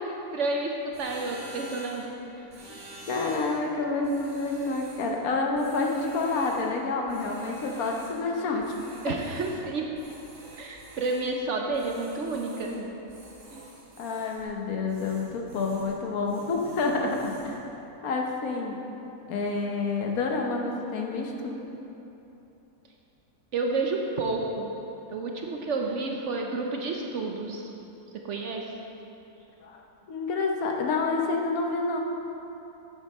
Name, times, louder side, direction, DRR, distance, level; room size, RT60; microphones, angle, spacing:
voice 1, 0.1-0.7 1.0-2.1 9.0-9.9 10.6-12.9 13.5-13.6 23.5-24.7 25.1-27.7 28.2-28.6, right 3 dB, 60° right, 1 dB, 0.9 m, -30 dB
sound 1, 0.9-2.1 2.5-3.6 4.0-5.2 5.5-6.7 7.1-8.3 8.6-9.7 9.9-11.3 11.7-12.8 13.1-14.5 14.9-16.0 16.3-17.6, right 1 dB, 40° right, 1.4 m, -48 dB
voice 2, 3.1-8.7 14.0-17.6 18.0-18.8 19.3-21.5 29.6-29.8 30.1-32.0, left 3 dB, 70° left, 1 dB, 1.3 m, -28 dB
9.1 x 7.3 x 4.2 m, 3.0 s
omnidirectional pair, 1.6 m